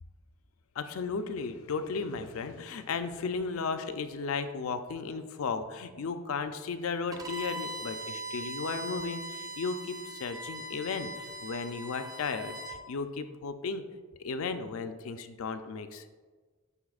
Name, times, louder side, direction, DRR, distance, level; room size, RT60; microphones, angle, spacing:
voice 1, 0.8-13.8 14.2-16.1, left 4 dB, 65° left, 9 dB, 0.4 m, -35 dB
Bowed string instrument, 7.1-12.8, right 1 dB, 20° right, 0.5 m, -40 dB
11.0 x 4.2 x 2.4 m, 1.4 s
head